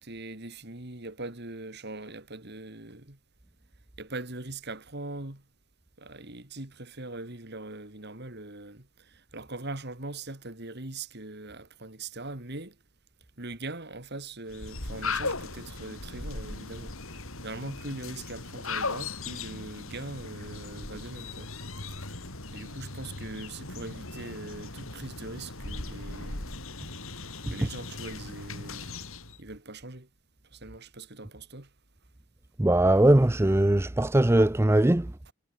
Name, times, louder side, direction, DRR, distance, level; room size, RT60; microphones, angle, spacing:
voice 1, 0.0-3.2 4.0-5.4 6.0-12.8 13.4-21.5 21.9-22.0 22.5-26.5 27.5-28.9 29.4-30.1 30.5-31.7 35.3-35.4, right 2 dB, 45° right, 2.5 m, -41 dB
sound 1, 14.5-29.4, left 3 dB, 65° left, 4.6 m, -38 dB
voice 2, 32.6-35.1, right 1 dB, 10° right, 0.4 m, -20 dB
head